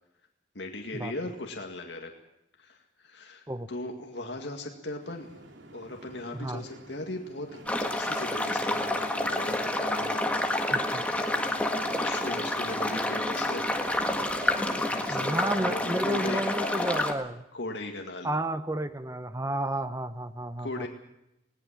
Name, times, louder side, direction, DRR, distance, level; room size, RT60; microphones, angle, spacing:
voice 1, 0.5-2.1 2.6-5.3 5.7-10.3 12.0-13.7 15.1-16.9 17.5-18.3 20.6-20.9, left 2 dB, 70° left, 2 dB, 2.1 m, -38 dB
sound 1, 5.0-16.3, right 2 dB, 80° right, 3.0 m, -47 dB
voice 2, 6.3-6.7 10.7-11.0 15.1-17.4 18.2-20.9, right 1 dB, 15° right, 12 dB, 0.8 m, -32 dB
sound 2, 7.7-17.1, left 1 dB, 5° left, 1.6 m, -29 dB
20.0 x 18.5 x 7.4 m, 0.85 s
head